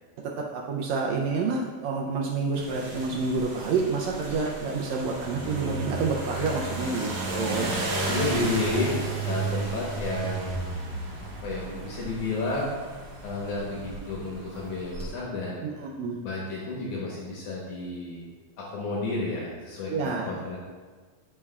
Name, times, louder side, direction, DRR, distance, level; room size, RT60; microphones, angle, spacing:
voice 1, 0.4-7.7 15.6-16.2 19.9-20.4, right 4 dB, 85° right, -1 dB, 1.5 m, -28 dB
sound 1, 2.5-15.1, right 2 dB, 55° right, 1.7 m, -34 dB
voice 2, 6.3-6.7 7.4-7.7 8.1-8.9 9.2-10.6 11.2-12.7 13.2-15.6 16.2-18.2 18.6-20.6, left 2 dB, 75° left, -4 dB, 2.3 m, -31 dB
9.6 x 5.3 x 2.3 m, 1.5 s
omnidirectional pair, 3.7 m